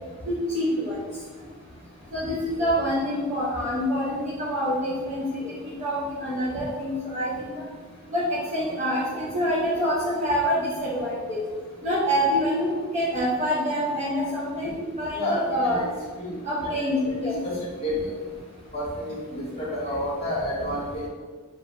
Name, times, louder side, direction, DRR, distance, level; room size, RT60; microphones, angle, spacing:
voice 1, 0.3-1.0 2.1-7.6 8.1-11.4 11.8-14.7 15.0-15.8 16.4-17.3, equal, 30° right, -9 dB, 0.8 m, -26 dB
voice 2, 15.1-15.9 16.2-16.3 16.6-18.1 18.7-21.1, left 1 dB, 30° left, -4 dB, 1.3 m, -30 dB
6.2 x 3.1 x 2.6 m, 1.5 s
head